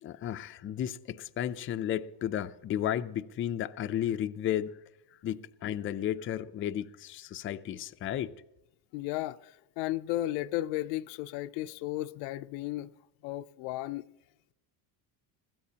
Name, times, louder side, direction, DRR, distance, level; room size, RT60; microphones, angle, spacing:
voice 1, 0.0-4.8 5.2-8.3, left 11 dB, 30° left, 0.4 m, -33 dB
voice 2, 8.9-12.9 13.2-14.0, left 15 dB, 85° left, 0.6 m, -34 dB
21.5 x 16.0 x 2.9 m
cardioid pair, 150°, 47 cm